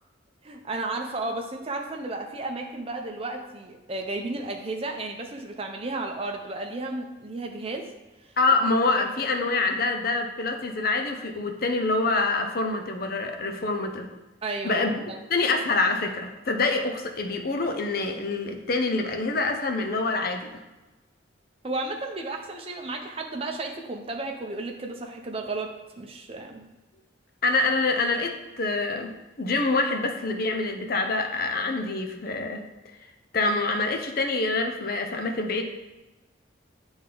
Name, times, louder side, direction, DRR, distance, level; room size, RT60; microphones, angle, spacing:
voice 1, 0.4-7.9 9.4-9.5 14.4-15.2 21.6-25.7 26.0-26.6, right 2 dB, 30° right, 3 dB, 0.6 m, -33 dB
voice 2, 8.4-14.1 14.6-14.9 15.3-20.6 27.4-32.6 33.3-35.6, left 3 dB, 50° left, 4 dB, 0.7 m, -26 dB
8.6 x 3.5 x 3.9 m, 1.1 s
head